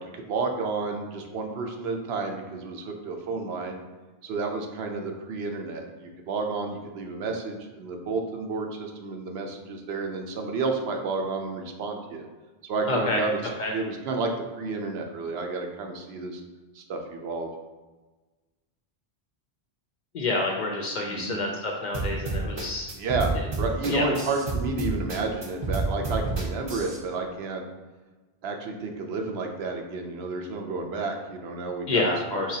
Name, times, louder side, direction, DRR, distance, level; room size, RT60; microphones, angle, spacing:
voice 1, 0.0-3.8 4.2-12.3 12.6-13.4 13.7-14.3 14.6-16.4 16.7-17.5 21.1-21.4 22.9-27.6 28.4-32.0 32.3-32.6, right 3 dB, 75° right, 3 dB, 0.8 m, -31 dB
voice 2, 12.9-13.2 13.6-13.7 20.1-22.9 23.9-24.1 31.9-32.6, left 2 dB, 55° left, 0 dB, 0.5 m, -28 dB
sound 1, 21.9-27.0, right 3 dB, 35° right, 0.5 m, -29 dB
4.0 x 3.0 x 2.7 m, 1.3 s
omnidirectional pair, 1.1 m